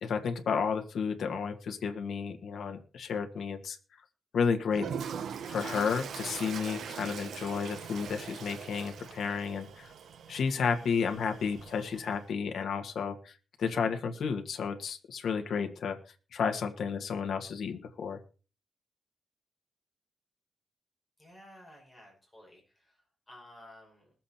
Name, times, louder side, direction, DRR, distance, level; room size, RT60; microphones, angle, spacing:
voice 1, 0.0-3.8 4.3-4.9 5.5-9.9 10.3-13.3 13.6-16.0 16.3-18.2, left 6 dB, 70° left, 4 dB, 1.7 m, -32 dB
Toilet flush, 4.7-12.2, right 7 dB, 70° right, 0.9 m, -42 dB
voice 2, 21.2-24.1, left 1 dB, 10° left, -2 dB, 5.7 m, -54 dB
21.0 x 7.5 x 4.3 m, 0.35 s
wide cardioid pair, 180°, 0 cm